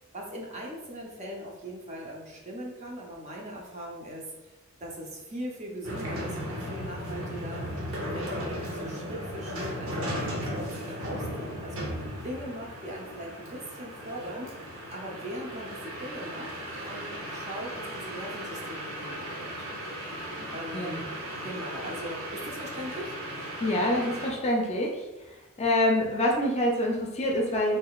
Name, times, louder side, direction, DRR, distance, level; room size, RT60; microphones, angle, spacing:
voice 1, 0.1-4.3 4.8-7.6 8.1-11.9 12.2-14.6 14.9-19.7 20.5-21.1 21.4-23.2, equal, 30° right, -1 dB, 0.7 m, -40 dB
sound 1, 5.8-24.3, equal, 65° right, 0.9 m, -36 dB
voice 2, 23.6-25.0 25.6-27.8, left 1 dB, 30° left, 0 dB, 0.5 m, -26 dB
3.7 x 3.1 x 2.3 m, 1.1 s
head